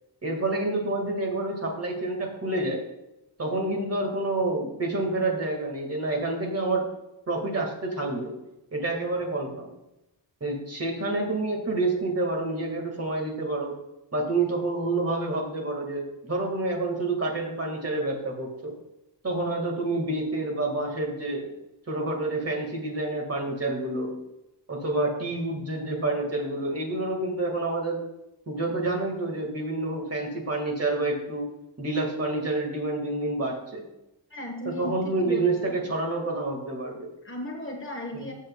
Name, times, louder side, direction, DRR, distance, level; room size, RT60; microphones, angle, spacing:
voice 1, 0.2-2.9 3.4-6.9 7.3-8.4 8.7-9.7 10.4-13.8 14.1-18.7 19.2-21.5 21.9-24.1 24.7-28.0 28.5-31.5 31.8-33.9 34.7-37.1 38.1-38.3, right 2 dB, 35° right, 0 dB, 2.1 m, -28 dB
voice 2, 34.3-35.8 37.2-38.3, left 1 dB, 25° left, 2 dB, 1.4 m, -36 dB
15.0 x 7.5 x 2.4 m, 0.92 s
wide cardioid pair, 155°, 44 cm